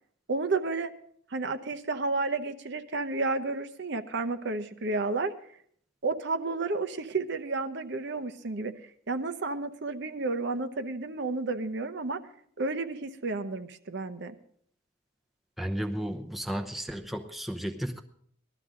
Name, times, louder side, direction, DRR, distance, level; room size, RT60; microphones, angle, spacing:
voice 1, 0.3-0.9 1.3-5.3 6.0-8.7 9.1-12.2 12.6-14.3, right 3 dB, 55° right, 8 dB, 0.8 m, -31 dB
voice 2, 15.6-18.0, equal, ahead, 3 dB, 0.8 m, -33 dB
19.5 x 13.0 x 3.8 m, 0.62 s
head